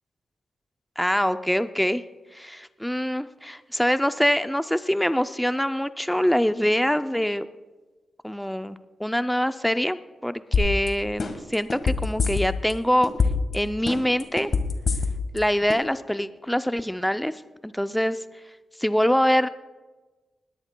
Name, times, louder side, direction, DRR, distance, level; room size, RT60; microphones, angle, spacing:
voice 1, 1.0-2.0 2.3-7.5 8.2-13.1 13.5-14.5 15.3-17.3 17.6-18.2 18.8-19.5, equal, 5° left, 11 dB, 0.4 m, -24 dB
sound 1, 10.5-10.9 11.2-12.7 13.0-13.5 13.9-15.4 15.7-15.8, left 4 dB, 50° left, 1.4 m, -23 dB
20.0 x 18.0 x 2.2 m, 1.2 s
wide cardioid pair, 120°, 0 cm